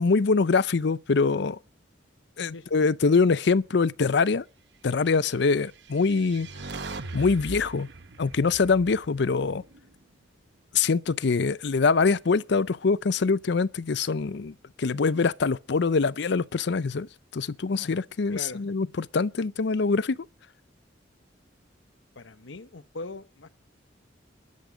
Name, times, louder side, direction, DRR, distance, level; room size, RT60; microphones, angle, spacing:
voice 1, 0.0-1.6 2.4-4.4 4.8-6.5 7.1-7.9 8.2-9.6 10.7-20.2, left 4 dB, 65° left, 0.5 m, -24 dB
voice 2, 2.5-2.8 18.3-18.6 22.1-23.5, left 3 dB, 80° left, 1.0 m, -40 dB
sound 1, 5.6-9.9, right 3 dB, 65° right, 1.0 m, -40 dB
13.0 x 12.0 x 5.0 m
head